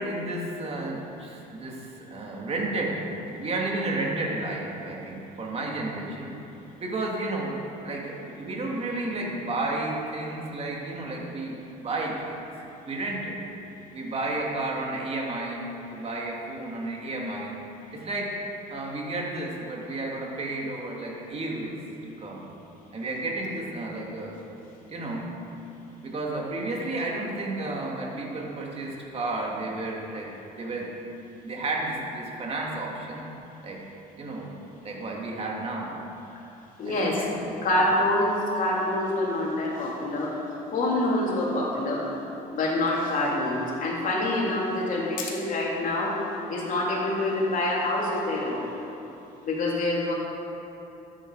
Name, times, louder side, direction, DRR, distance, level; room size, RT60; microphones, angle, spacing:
voice 1, 0.0-6.3 6.8-12.5 12.9-13.4 13.9-15.6 15.9-17.6 17.9-18.4 18.7-21.8 22.0-22.5 22.9-24.4 24.9-25.4 26.0-30.9 31.4-33.2 33.6-33.8 34.2-34.5 34.8-36.2 36.8-37.7, right 2 dB, 35° right, -2 dB, 2.5 m, -32 dB
voice 2, 36.8-37.2 37.6-40.4 40.7-42.1 42.5-46.2 46.5-48.7 49.5-50.1, left 1 dB, 50° left, -3 dB, 3.2 m, -26 dB
13.0 x 10.0 x 4.9 m, 2.9 s
cardioid pair, 110°, 17 cm